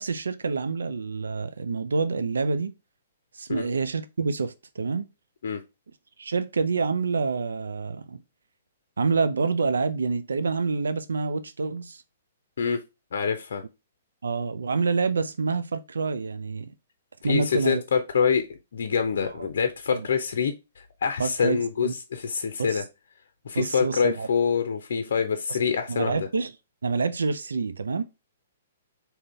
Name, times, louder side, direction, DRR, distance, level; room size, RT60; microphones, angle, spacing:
voice 1, 0.0-2.7 3.3-5.1 6.2-8.2 9.0-12.0 14.2-16.7 17.2-17.8 19.2-19.5 19.9-20.1 21.2-21.9 22.6-22.8 23.5-24.3 25.5-25.6 25.9-26.5 26.8-28.0, right 4 dB, 80° right, 0.4 m, -27 dB
voice 2, 13.1-13.6 17.2-22.8 23.5-26.3, left 6 dB, 65° left, 0.5 m, -26 dB
3.7 x 2.8 x 4.2 m
hypercardioid pair, 125°, 0 cm